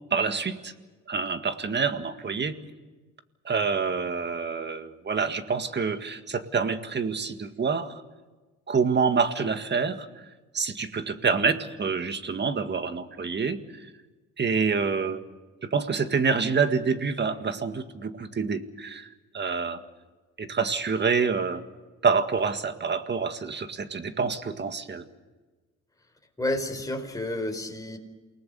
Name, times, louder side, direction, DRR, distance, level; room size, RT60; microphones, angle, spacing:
voice 1, 0.1-0.7 1.1-2.6 3.5-8.0 8.7-10.1 10.5-13.6 14.4-15.2 15.6-19.1 19.3-19.8 20.4-21.6 22.0-25.1, right 5 dB, 35° right, 9 dB, 1.9 m, -27 dB
voice 2, 26.4-28.0, left 1 dB, 10° left, 3 dB, 4.7 m, -30 dB
28.5 x 19.0 x 7.0 m, 1.3 s
cardioid pair, 90°, 30 cm